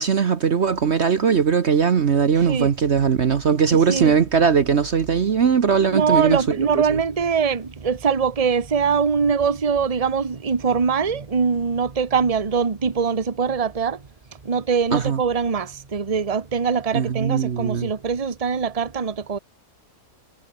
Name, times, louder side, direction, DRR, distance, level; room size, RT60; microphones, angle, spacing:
voice 1, 0.0-6.6 14.9-15.2 16.9-17.9, right 6 dB, 50° right, 1.3 m, -19 dB
voice 2, 2.4-2.7 3.7-4.2 5.9-14.0 14.3-19.4, right 6 dB, 25° right, 1.2 m, -22 dB
omnidirectional pair, 1.6 m